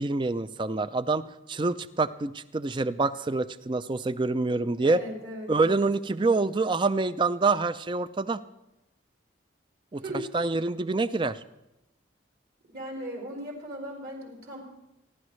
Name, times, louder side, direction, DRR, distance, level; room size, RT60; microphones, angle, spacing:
voice 1, 0.0-5.0 5.5-8.4 9.9-10.0 10.3-11.4, right 3 dB, 25° right, 14 dB, 0.4 m, -26 dB
voice 2, 4.8-5.8 10.0-10.3 12.7-14.6, equal, 60° right, -2 dB, 4.8 m, -38 dB
27.5 x 12.0 x 3.2 m, 0.92 s
head